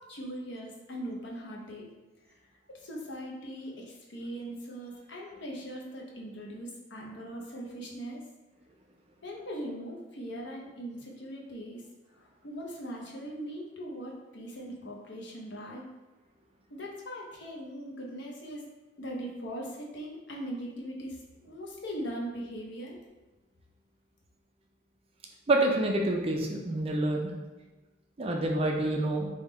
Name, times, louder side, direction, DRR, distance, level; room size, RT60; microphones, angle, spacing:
voice 1, 0.0-1.9 2.3-2.4 2.7-8.2 9.2-11.8 12.2-15.8 16.7-18.7 19.0-23.0, equal, 60° left, -1 dB, 0.7 m, -40 dB
voice 2, 25.5-27.3 28.2-29.3, right 1 dB, 30° right, 1 dB, 0.4 m, -27 dB
3.6 x 2.3 x 4.1 m, 1.1 s
head